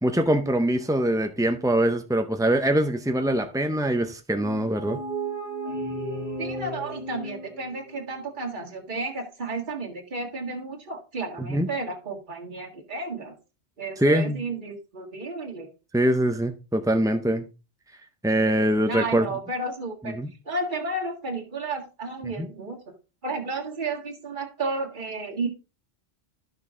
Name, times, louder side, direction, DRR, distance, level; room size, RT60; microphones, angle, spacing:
voice 1, 0.0-5.0 11.4-11.7 14.0-14.4 15.9-17.5 18.2-19.3 20.2-20.3 22.4-22.5, right 1 dB, 5° right, 0.3 m, -23 dB
sound 1, 4.4-8.1, right 2 dB, 70° left, 4.5 m, -34 dB
voice 2, 6.4-13.4 13.8-15.7 18.9-20.2 20.5-22.9 23.2-25.5, right 3 dB, 45° right, 1.9 m, -32 dB
12.5 x 5.8 x 3.6 m
omnidirectional pair, 1.1 m